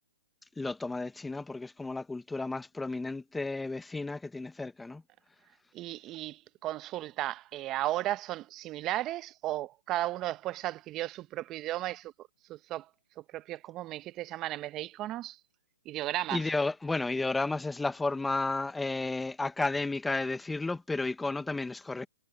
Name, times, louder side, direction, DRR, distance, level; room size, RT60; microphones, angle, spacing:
voice 1, 0.6-5.0 16.3-22.1, left 3 dB, 5° left, 0.6 m, -32 dB
voice 2, 5.7-12.9 13.2-15.4 15.8-16.4, right 15 dB, 25° right, 0.8 m, -35 dB
hypercardioid pair, 140°, 0 cm